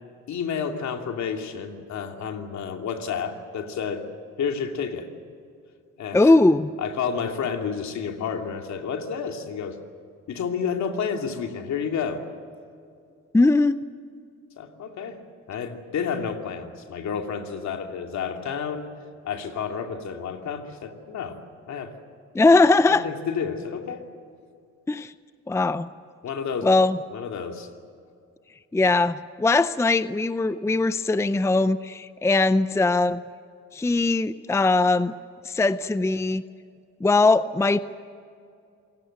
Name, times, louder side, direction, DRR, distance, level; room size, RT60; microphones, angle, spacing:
voice 1, 0.3-4.1 4.4-5.1 6.0-6.3 6.8-9.8 10.3-12.2 14.6-15.2 15.5-18.9 19.2-21.4 21.7-21.9 22.9-24.0 26.2-26.7 27.1-27.7, left 6 dB, 65° left, 4 dB, 2.7 m, -30 dB
voice 2, 6.1-6.7 13.3-13.8 22.3-23.1 24.9-25.1 25.5-25.9 26.6-27.0 28.7-33.2 33.7-35.1 35.4-36.4 37.0-37.8, left 3 dB, 10° left, 14 dB, 0.5 m, -20 dB
27.5 x 18.0 x 7.9 m, 2.4 s
cardioid pair, 90°, 30 cm